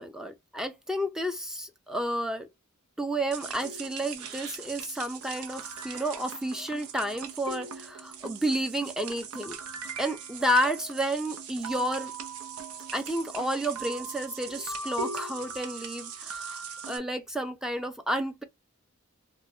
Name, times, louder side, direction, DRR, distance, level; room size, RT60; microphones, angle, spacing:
voice 1, 0.0-2.5 3.0-9.6 10.0-12.1 12.9-18.4, right 1 dB, ahead, 0.4 m, -31 dB
sound 1, 3.3-17.0, right 5 dB, 75° right, 0.5 m, -40 dB
2.5 x 2.1 x 3.2 m
head